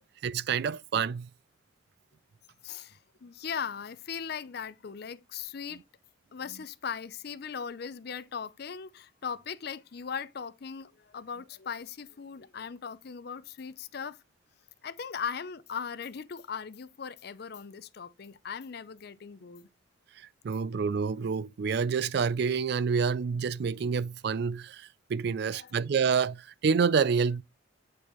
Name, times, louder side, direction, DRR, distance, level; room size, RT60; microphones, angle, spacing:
voice 1, 0.2-1.3 20.2-27.4, right 6 dB, 55° right, 0.3 m, -28 dB
voice 2, 2.6-5.8 6.3-14.2 14.8-19.7 25.5-25.7, left 6 dB, 50° left, 0.5 m, -39 dB
8.4 x 4.4 x 3.0 m
head